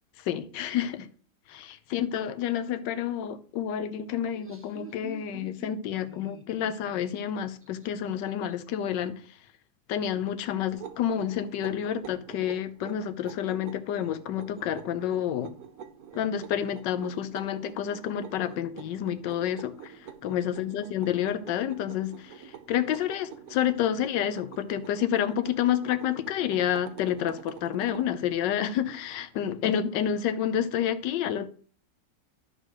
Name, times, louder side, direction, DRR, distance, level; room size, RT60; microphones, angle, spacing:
voice 1, 0.2-1.1 1.5-9.2 9.9-15.5 16.1-31.5, left 10 dB, 80° left, 1.4 m, -29 dB
Laughter, 4.2-8.8, right 3 dB, 10° right, 0.9 m, -48 dB
sound 1, 10.7-28.1, right 8 dB, 60° right, 1.3 m, -47 dB
11.0 x 3.9 x 6.4 m
omnidirectional pair, 1.9 m